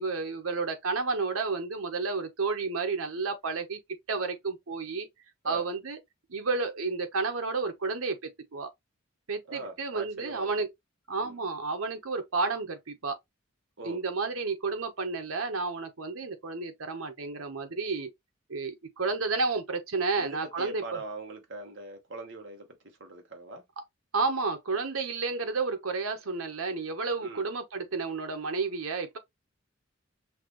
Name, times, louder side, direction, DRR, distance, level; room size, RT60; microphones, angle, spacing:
voice 1, 0.0-3.8 4.1-5.1 5.4-6.0 6.3-8.7 9.3-10.7 11.1-13.2 13.8-18.1 18.5-21.0 24.1-29.2, right 4 dB, 90° right, 1.1 m, -31 dB
voice 2, 9.5-10.5 11.1-11.4 13.8-14.0 20.1-23.6 27.2-27.5, right 2 dB, 60° right, 1.2 m, -42 dB
5.8 x 2.5 x 3.0 m
head